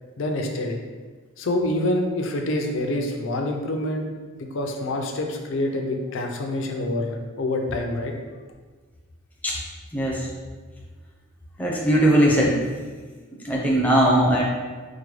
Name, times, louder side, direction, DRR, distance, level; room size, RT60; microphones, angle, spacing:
voice 1, 0.2-0.8 1.4-4.1 4.4-8.1, left 1 dB, 60° left, 3 dB, 0.4 m, -26 dB
voice 2, 9.9-10.3 11.6-12.6 13.4-14.4, right 1 dB, 10° left, -4 dB, 0.5 m, -19 dB
4.7 x 2.1 x 3.1 m, 1.4 s
head